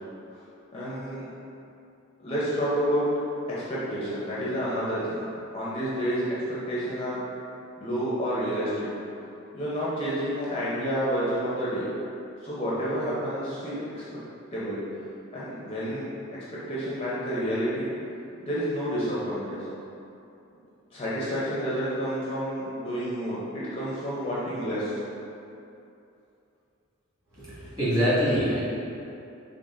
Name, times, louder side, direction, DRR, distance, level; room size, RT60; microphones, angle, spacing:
voice 1, 0.7-1.2 2.2-3.2 3.7-5.3 5.5-7.2 7.8-8.9 9.5-11.9 12.4-14.0 14.5-14.8 15.3-16.1 16.7-17.9 18.4-19.7 20.9-25.0, equal, 30° left, -9 dB, 0.5 m, -29 dB
voice 2, 27.4-28.6, equal, 20° right, -12 dB, 1.3 m, -24 dB
4.0 x 3.3 x 2.4 m, 2.7 s
head